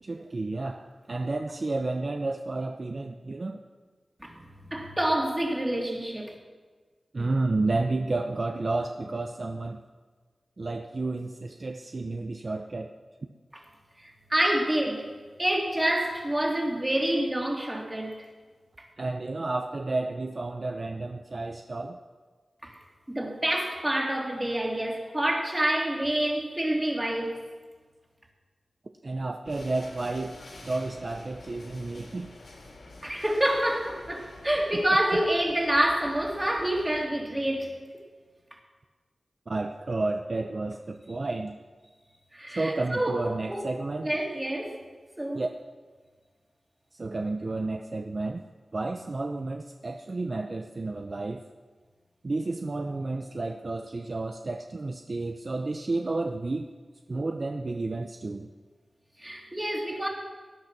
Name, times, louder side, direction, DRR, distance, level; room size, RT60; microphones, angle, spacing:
voice 1, 0.0-3.6 7.1-9.8 10.6-12.9 19.0-22.0 29.0-30.4 30.6-32.3 34.7-34.8 35.1-35.2 39.5-41.5 42.6-44.2 45.3-45.5 47.0-48.4 48.7-51.4 52.2-56.7 57.1-58.5, right 2 dB, 45° right, 0.7 m, -31 dB
voice 2, 4.2-6.3 14.3-15.1 15.4-18.2 22.6-22.7 23.1-27.4 33.0-37.8 42.3-43.7 44.0-44.8 45.2-45.4 59.2-60.1, right 1 dB, 15° right, 2.6 m, -27 dB
sound 1, 29.4-37.0, left 2 dB, 75° left, 3.3 m, -48 dB
18.0 x 11.0 x 6.0 m
wide cardioid pair, 85°, 0 cm